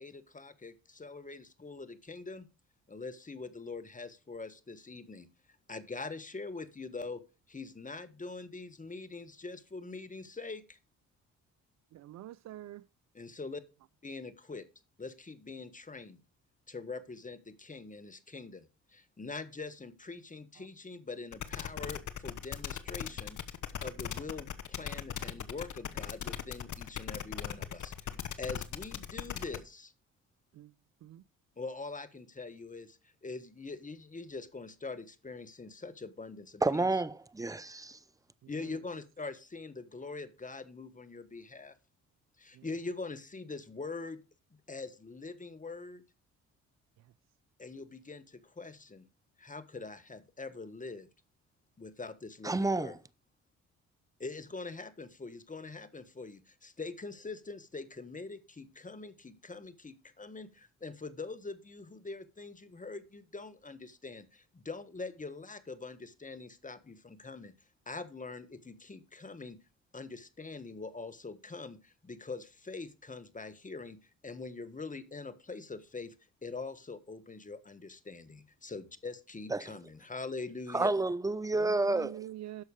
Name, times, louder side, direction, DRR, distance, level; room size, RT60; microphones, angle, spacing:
voice 1, 0.0-2.5 2.9-5.3 5.7-7.2 7.5-10.8 13.1-13.6 14.0-14.6 15.0-16.2 16.7-23.4 23.8-29.9 31.6-36.9 38.5-41.7 42.4-44.2 44.7-46.0 47.6-49.1 49.4-51.1 51.8-53.0 54.2-67.5 67.9-69.6 69.9-76.1 76.4-80.9, left 3 dB, 20° left, 1.3 m, -43 dB
voice 2, 11.9-12.9 20.6-20.7 30.5-30.7 31.0-31.2 38.4-38.8 42.5-42.7 47.0-47.1 81.6-82.6, right 13 dB, 50° right, 0.4 m, -46 dB
sound 1, 21.3-29.6, left 9 dB, 50° left, 1.1 m, -38 dB
voice 3, 36.6-38.0 52.4-53.0 79.5-79.7 80.7-82.2, right 2 dB, 10° right, 0.7 m, -30 dB
10.5 x 6.4 x 4.8 m
hypercardioid pair, 50°, 37 cm